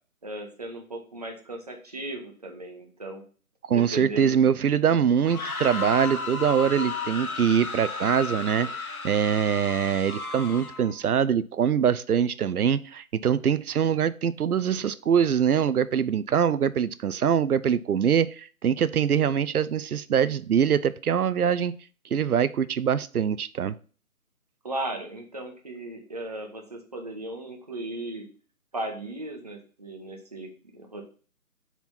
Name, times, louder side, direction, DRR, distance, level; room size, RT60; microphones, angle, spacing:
voice 1, 0.2-3.2 3.7-4.5 24.6-28.3 28.7-31.0, right 1 dB, 25° right, 2 dB, 0.8 m, -36 dB
voice 2, 3.7-21.7 22.1-23.7, right 8 dB, 85° right, 15 dB, 0.5 m, -23 dB
sound 1, 5.2-10.9, left 4 dB, 75° left, 1.1 m, -33 dB
4.5 x 4.1 x 5.7 m, 0.40 s
figure-of-eight pair, 155°, 43 cm